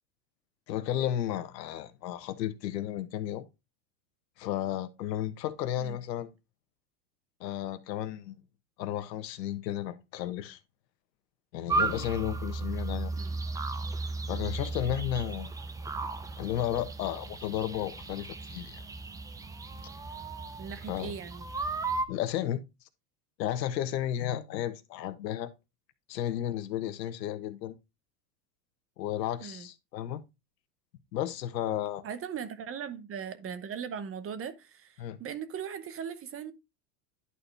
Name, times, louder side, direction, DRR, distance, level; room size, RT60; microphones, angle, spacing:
voice 1, 0.7-3.5 4.4-6.3 7.4-8.4 8.8-10.6 11.5-13.1 14.3-15.5 16.4-18.8 20.9-21.1 22.1-22.6 23.4-25.5 26.1-27.7 29.0-30.2 31.1-32.0 35.0-35.2, left 11 dB, 80° left, 1.3 m, -33 dB
sound 1, 11.7-22.1, right 3 dB, 10° right, 0.4 m, -35 dB
voice 2, 20.6-21.5 29.4-29.7 32.0-36.5, right 7 dB, 25° right, 0.9 m, -39 dB
11.0 x 4.2 x 3.4 m
supercardioid pair, 120°, 49 cm